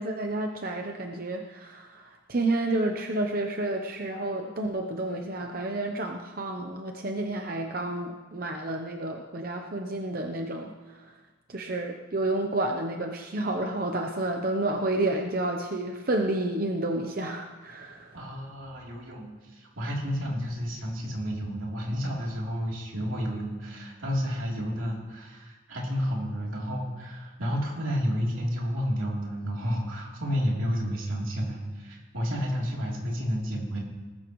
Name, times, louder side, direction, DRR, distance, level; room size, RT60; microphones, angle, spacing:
voice 1, 0.0-10.7 11.5-18.2, right 2 dB, 45° right, 3 dB, 0.8 m, -30 dB
voice 2, 18.1-33.8, equal, 85° right, -3 dB, 3.4 m, -31 dB
19.5 x 13.0 x 3.2 m, 1.3 s
head